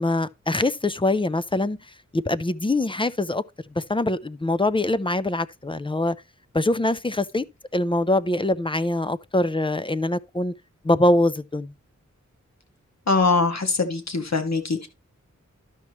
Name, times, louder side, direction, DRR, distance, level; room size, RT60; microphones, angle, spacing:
voice 1, 0.0-1.8 2.1-3.4 3.8-6.2 6.5-7.4 7.7-10.5 10.8-11.7, left 1 dB, 15° left, 0.4 m, -23 dB
voice 2, 13.1-14.9, left 4 dB, 60° left, 1.6 m, -22 dB
12.0 x 6.0 x 3.0 m
wide cardioid pair, 70°, 30 cm